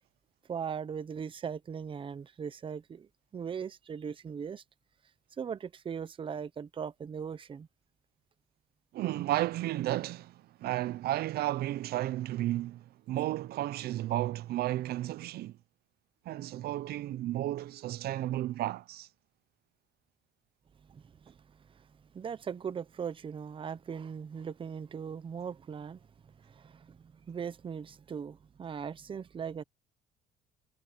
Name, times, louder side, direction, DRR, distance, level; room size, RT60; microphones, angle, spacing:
voice 1, 0.5-4.6 5.4-7.7 20.9-21.9 22.1-29.6, right 7 dB, 30° right, 0.8 m, -39 dB
voice 2, 8.9-15.5 16.3-19.1, right 15 dB, 70° right, 0.6 m, -33 dB
cardioid pair, 110°, 17 cm